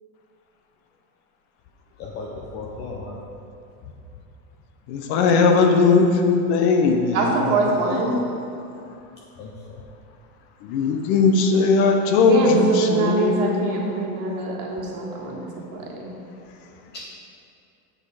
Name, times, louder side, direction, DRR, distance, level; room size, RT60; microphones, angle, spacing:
voice 1, 2.0-3.2 9.4-9.8 16.9-17.0, left 3 dB, 25° left, -2 dB, 0.4 m, -35 dB
voice 2, 4.9-7.2 10.7-14.0, left 4 dB, 45° left, 4 dB, 0.8 m, -18 dB
voice 3, 7.1-8.2 12.3-16.2, right 3 dB, 45° right, -2 dB, 1.6 m, -24 dB
7.6 x 6.4 x 4.8 m, 2.7 s
supercardioid pair, 150°, 46 cm